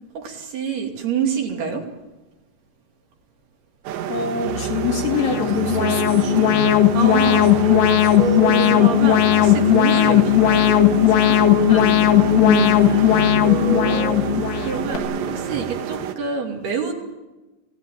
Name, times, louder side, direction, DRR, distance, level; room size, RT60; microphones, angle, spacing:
voice 1, 0.1-1.8 6.9-7.7 8.0-8.2 8.5-11.4 13.6-14.1 14.6-16.9, right 7 dB, 60° right, 1 dB, 4.4 m, -27 dB
sound 1, 3.9-16.2, right 9 dB, 75° right, 3.5 m, -30 dB
voice 2, 4.1-6.8 11.7-13.5, left 3 dB, 45° left, 0 dB, 3.5 m, -25 dB
sound 2, 4.4-15.8, equal, 35° right, 3.9 m, -27 dB
Alarm, 5.1-15.0, left 13 dB, 70° left, 2.9 m, -17 dB
27.5 x 17.0 x 9.2 m, 1.1 s
omnidirectional pair, 5.5 m